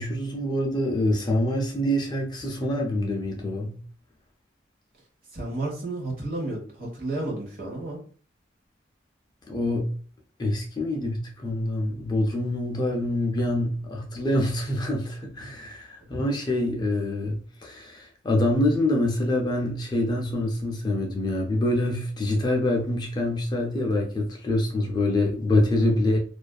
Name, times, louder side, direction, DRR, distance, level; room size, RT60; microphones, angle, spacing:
voice 1, 0.0-3.8 9.5-9.9 10.4-26.2, left 1 dB, 20° left, 0.3 m, -25 dB
voice 2, 5.3-8.0, right 2 dB, 50° right, 1.0 m, -32 dB
2.4 x 2.3 x 2.2 m
head